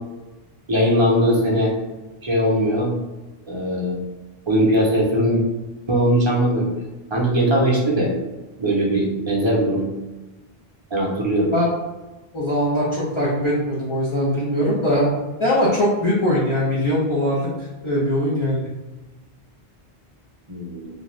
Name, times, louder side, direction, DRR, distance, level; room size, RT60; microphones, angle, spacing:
voice 1, 0.7-1.7 2.2-2.9 3.5-4.0 4.5-5.4 5.9-6.8 7.1-8.1 8.6-9.9 10.9-11.5 20.5-20.9, equal, 30° right, -2 dB, 0.6 m, -20 dB
voice 2, 12.3-15.1 15.4-18.7, left 1 dB, 35° left, -9 dB, 0.6 m, -21 dB
2.6 x 2.4 x 3.1 m, 1.1 s
omnidirectional pair, 1.0 m